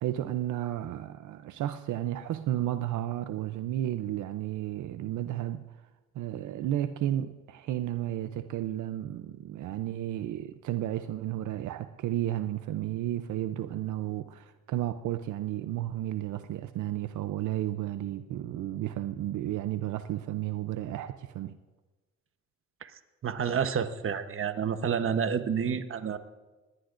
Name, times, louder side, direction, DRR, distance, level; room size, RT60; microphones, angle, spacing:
voice 1, 0.0-5.6 6.1-21.6, right 13 dB, 75° right, 0.6 m, -33 dB
voice 2, 23.2-26.2, right 7 dB, 45° right, 1.0 m, -29 dB
20.5 x 18.0 x 2.6 m
cardioid pair, 90°, 30 cm